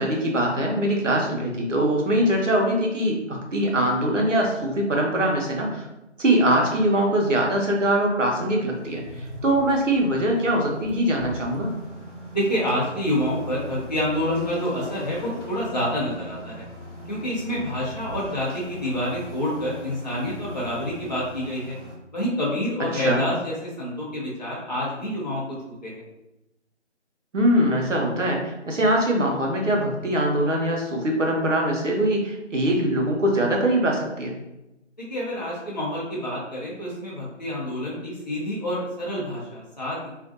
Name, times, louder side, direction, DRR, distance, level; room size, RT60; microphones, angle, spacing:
voice 1, 0.0-5.8 6.2-11.7 22.9-23.2 27.3-34.3, right 1 dB, 90° right, -1 dB, 0.8 m, -22 dB
sound 1, 8.7-22.0, equal, 80° left, 0.8 m, -40 dB
voice 2, 12.3-16.7 17.1-21.8 22.1-26.0 35.0-40.1, left 1 dB, 35° left, -6 dB, 0.6 m, -28 dB
2.5 x 2.2 x 2.5 m, 0.95 s
figure-of-eight pair, 160°, 36 cm